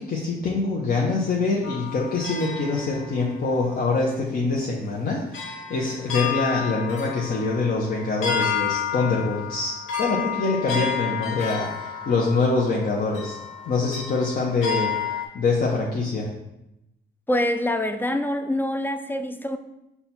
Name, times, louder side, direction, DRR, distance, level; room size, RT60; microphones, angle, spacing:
voice 1, 0.0-9.7 10.0-13.4 13.7-14.9 15.3-16.3, left 3 dB, 50° left, -2 dB, 0.7 m, -24 dB
sound 1, 1.6-3.6 4.5-4.6 5.3-15.3, left 7 dB, 80° left, 0.8 m, -31 dB
voice 2, 17.3-19.6, left 1 dB, 10° left, 7 dB, 0.3 m, -25 dB
5.5 x 2.3 x 4.2 m, 0.89 s
cardioid pair, 90°, 20 cm